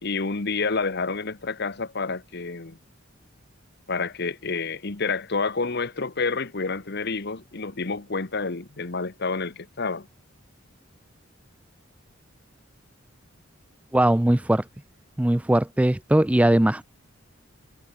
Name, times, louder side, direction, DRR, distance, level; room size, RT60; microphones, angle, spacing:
voice 1, 0.0-2.8 3.9-10.1, left 4 dB, 55° left, 1.3 m, -29 dB
voice 2, 13.9-14.6 15.2-16.8, right 1 dB, 5° right, 0.4 m, -20 dB
head